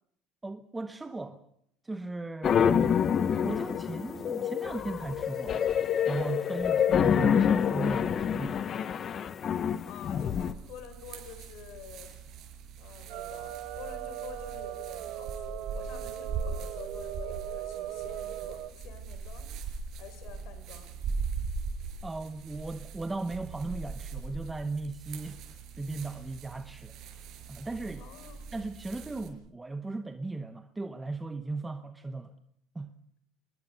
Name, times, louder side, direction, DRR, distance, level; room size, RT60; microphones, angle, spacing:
voice 1, 0.4-1.4 1.8-3.0 3.3-5.6 6.1-8.6 22.0-27.0 27.5-28.0 28.5-32.3 32.7-32.9, right 3 dB, 10° right, 0.9 m, -37 dB
sound 1, 2.4-10.5, left 8 dB, 30° left, 0.9 m, -27 dB
voice 2, 9.8-12.1 12.8-19.5 20.0-20.9 28.0-28.5, left 8 dB, 55° left, 4.3 m, -48 dB
sound 2, 10.3-29.3, right 5 dB, 45° right, 5.7 m, -40 dB
sound 3, 13.1-18.7, right 13 dB, 60° right, 1.7 m, -39 dB
27.0 x 21.5 x 6.6 m
cardioid pair, 170°, 0 cm